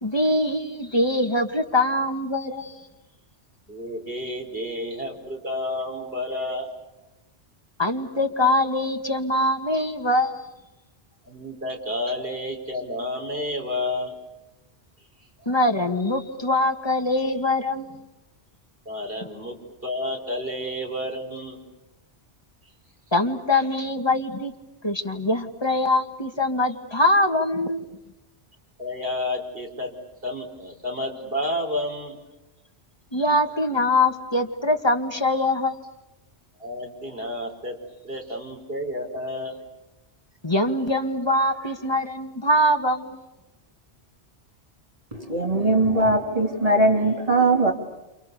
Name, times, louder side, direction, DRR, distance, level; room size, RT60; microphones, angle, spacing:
voice 1, 0.0-2.9 7.8-10.5 15.5-17.9 23.1-24.5 24.8-27.9 33.1-35.8 40.4-43.2, left 1 dB, 25° left, 4 dB, 2.1 m, -23 dB
voice 2, 3.7-6.7 11.3-14.1 15.4-15.5 18.8-19.6 19.8-21.6 28.8-29.9 30.2-32.2 36.6-37.8 38.0-39.6, left 1 dB, 55° right, 2 dB, 5.1 m, -30 dB
voice 3, 45.1-47.7, right 2 dB, 35° right, 2 dB, 3.6 m, -20 dB
29.0 x 28.5 x 6.9 m, 0.98 s
omnidirectional pair, 1.1 m